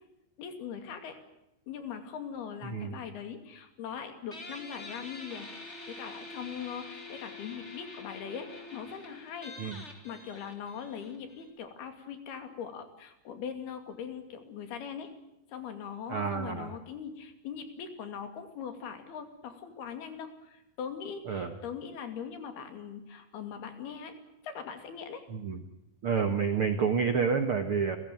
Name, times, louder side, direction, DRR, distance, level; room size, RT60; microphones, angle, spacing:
voice 1, 0.4-1.2 1.7-5.5 5.9-15.1 15.5-24.1 24.4-25.3, left 7 dB, 70° left, 7 dB, 4.4 m, -41 dB
voice 2, 2.6-3.0 9.6-9.8 16.1-16.7 21.3-21.5 25.3-25.6 26.0-28.0, right 6 dB, 60° right, 8 dB, 1.4 m, -29 dB
Guitar, 4.3-11.5, left 3 dB, 15° left, 3.5 m, -46 dB
29.5 x 15.0 x 9.2 m, 0.86 s
omnidirectional pair, 4.8 m